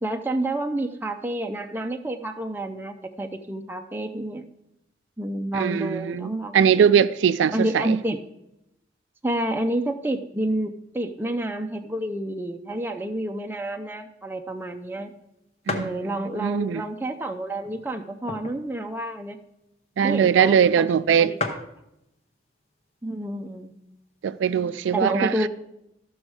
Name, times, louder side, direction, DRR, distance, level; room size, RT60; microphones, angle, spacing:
voice 1, 0.0-4.5 5.2-6.9 7.5-8.2 9.2-15.1 15.7-19.4 20.0-20.9 21.2-21.7 23.0-23.7 24.9-25.5, right 1 dB, 10° right, 0.5 m, -29 dB
voice 2, 5.5-8.0 15.7-15.9 16.4-16.8 20.0-21.4 24.2-25.5, right 7 dB, 85° right, 0.3 m, -21 dB
sound 1, 14.7-14.8 15.1-15.2 15.6-16.0 16.7-16.8 17.6-18.7 19.1-19.2 19.4-19.6 20.4-20.5 20.7-20.8 21.1-21.2 21.4-21.8 22.7-23.0 23.5-23.6 23.8-24.6, left 3 dB, 35° left, 0.8 m, -33 dB
13.5 x 6.2 x 4.8 m
head